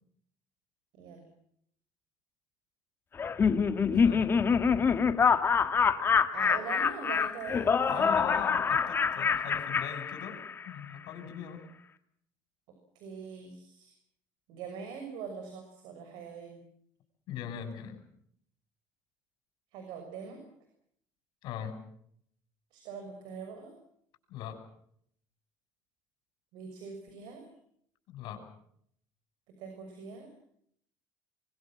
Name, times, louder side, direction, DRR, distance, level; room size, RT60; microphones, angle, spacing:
Laughter, 3.2-10.7, left 6 dB, 30° left, 1.7 m, -26 dB
voice 1, 3.9-4.5 7.9-11.6 17.3-18.0 21.4-21.8 24.3-24.6 28.1-28.4, left 9 dB, 70° left, 8 dB, 6.8 m, -40 dB
voice 2, 6.3-7.7 7.9-8.3 12.9-13.9 14.5-16.6 19.7-20.4 22.7-23.7 26.5-27.4 29.5-30.3, right 5 dB, 75° right, 5 dB, 6.3 m, -42 dB
25.0 x 21.5 x 7.6 m, 0.68 s
cardioid pair, 120°, 8 cm